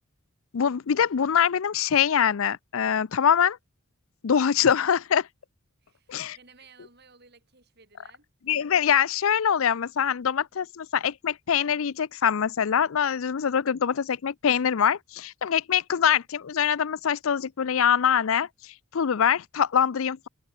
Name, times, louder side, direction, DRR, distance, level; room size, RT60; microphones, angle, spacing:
voice 1, 0.5-3.6 4.2-5.3 6.1-6.4 8.5-18.5 18.9-20.3, left 8 dB, 70° left, 0.5 m, -24 dB
voice 2, 5.8-8.3, right 5 dB, 50° right, 6.0 m, -56 dB
head